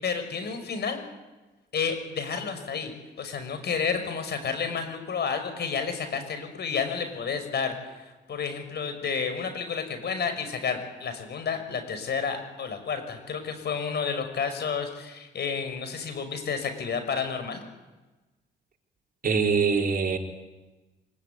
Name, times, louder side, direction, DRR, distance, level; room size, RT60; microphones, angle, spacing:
voice 1, 0.0-1.0 1.7-2.9 3.2-7.7 8.3-17.7, left 6 dB, 55° left, 8 dB, 6.2 m, -30 dB
voice 2, 19.2-20.2, right 5 dB, 45° right, 2 dB, 4.1 m, -23 dB
25.0 x 23.0 x 9.6 m, 1.1 s
cardioid pair, 90°, 20 cm